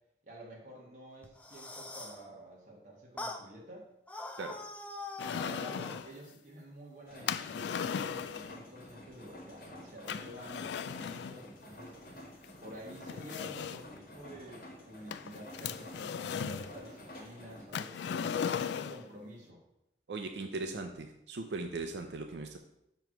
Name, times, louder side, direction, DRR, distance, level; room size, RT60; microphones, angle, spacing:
voice 1, 0.2-3.9 5.3-12.0 12.6-18.4 18.6-19.6, equal, 45° right, -3 dB, 1.3 m, -49 dB
sound 1, 1.2-2.2 3.2-3.4 4.1-6.0, left 2 dB, 10° left, 0.4 m, -43 dB
sound 2, 5.2-6.1 7.3-8.6 10.1-11.4 12.4-12.5 13.1-14.0 15.1-16.7 17.7-19.1, left 7 dB, 80° left, 0.3 m, -37 dB
sound 3, 7.1-17.6, left 1 dB, 55° left, 1.4 m, -50 dB
voice 2, 20.1-22.6, right 3 dB, 80° right, 5 dB, 0.5 m, -39 dB
6.8 x 3.1 x 5.8 m, 0.81 s
head